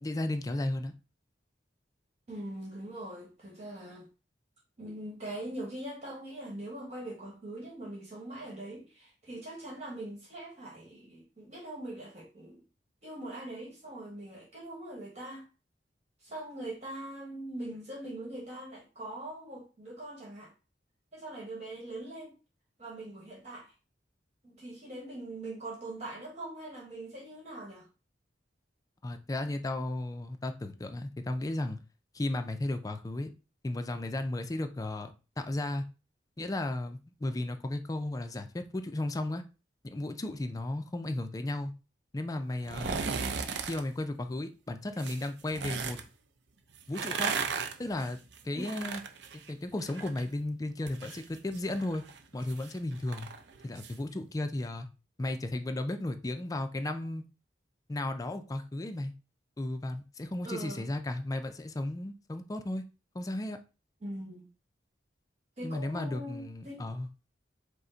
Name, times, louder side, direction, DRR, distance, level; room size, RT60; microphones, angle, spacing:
voice 1, 0.0-0.9 29.0-31.8 32.1-33.3 33.6-35.8 36.4-39.4 39.8-41.7 42.1-43.2 43.6-46.0 46.9-47.3 47.8-48.2 48.4-49.0 49.5-52.0 52.3-53.3 53.6-54.9 55.2-57.2 57.9-59.1 59.6-62.8 63.1-63.6 65.6-67.1, left 1 dB, 20° left, 0.4 m, -34 dB
voice 2, 2.3-4.1 4.8-12.6 13.0-15.4 16.2-20.5 21.1-22.4 22.8-23.7 24.4-27.9 48.5-48.9 60.4-60.9 64.0-64.5 65.6-66.9, right 1 dB, 40° right, 1.3 m, -42 dB
sound 1, 42.6-43.8 45.0-46.0 46.8-50.2 50.5-54.0 54.3-54.4, right 5 dB, 70° right, 0.5 m, -36 dB
5.2 x 2.1 x 3.8 m
head